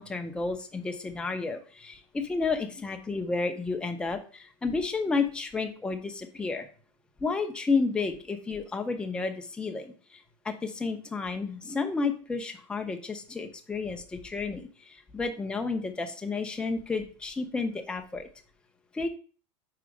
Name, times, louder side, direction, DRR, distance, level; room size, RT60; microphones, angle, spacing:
voice 1, 0.0-6.7 7.2-9.9 10.4-18.3 18.9-19.1, left 4 dB, 5° left, 4 dB, 0.5 m, -31 dB
4.8 x 4.3 x 5.0 m, 0.40 s
supercardioid pair, 170°, 15 cm